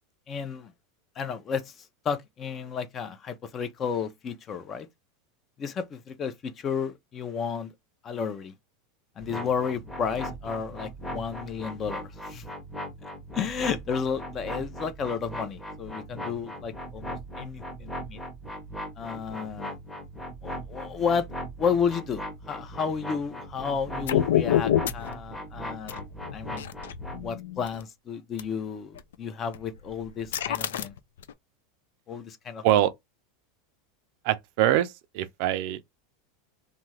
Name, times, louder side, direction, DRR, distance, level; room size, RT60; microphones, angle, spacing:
voice 1, 0.3-0.7 1.2-1.7 2.0-4.9 5.6-7.7 8.0-8.5 9.2-12.4 13.3-18.2 19.0-19.8 20.4-21.2 21.6-22.2 22.5-26.0 26.3-26.7 27.2-30.9 32.1-32.6, left 6 dB, 30° left, 0.5 m, -32 dB
sound 1, 9.2-27.3, equal, 5° left, 0.8 m, -39 dB
sound 2, 24.1-25.1 25.9-27.8 28.4-28.5 29.0-29.1 29.5-31.3, left 11 dB, 90° left, 0.3 m, -27 dB
voice 2, 34.2-35.8, right 13 dB, 60° right, 0.4 m, -24 dB
2.7 x 2.4 x 3.1 m
supercardioid pair, 135°, 0 cm